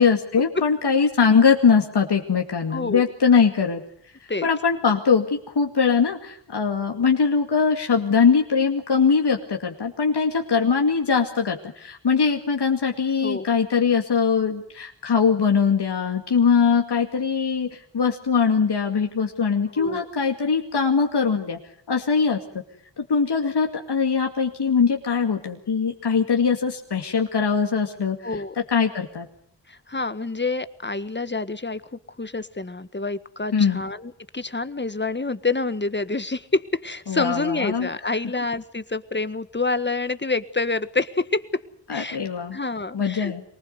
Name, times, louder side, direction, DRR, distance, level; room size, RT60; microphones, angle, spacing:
voice 1, 0.0-3.8 4.4-21.6 21.9-22.4 23.0-28.2 28.7-29.3 33.5-33.8 37.1-37.9 41.9-42.6 42.9-43.4, left 5 dB, 70° left, 3 dB, 2.3 m, -21 dB
voice 2, 2.7-3.0 4.3-4.5 13.2-13.5 19.8-20.0 28.2-28.5 29.7-41.4 41.9-42.2 42.5-43.3, left 3 dB, 25° left, 12 dB, 1.7 m, -27 dB
23.5 x 19.5 x 8.1 m, 0.65 s
cardioid pair, 50°, 42 cm